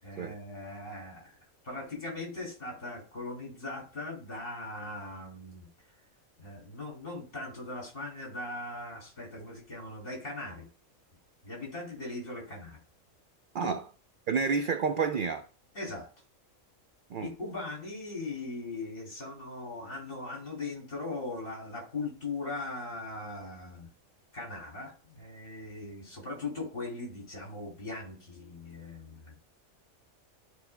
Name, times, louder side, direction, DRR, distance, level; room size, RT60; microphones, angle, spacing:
voice 1, 0.0-1.3 1.6-5.7 6.4-10.6 11.4-12.8 13.6-13.7 15.7-16.1 17.2-23.9 24.3-29.4, left 2 dB, 40° left, 3.1 m, -39 dB
voice 2, 14.3-15.5 17.1-17.3, right 5 dB, 70° right, 0.4 m, -29 dB
13.5 x 4.8 x 2.2 m
omnidirectional pair, 1.4 m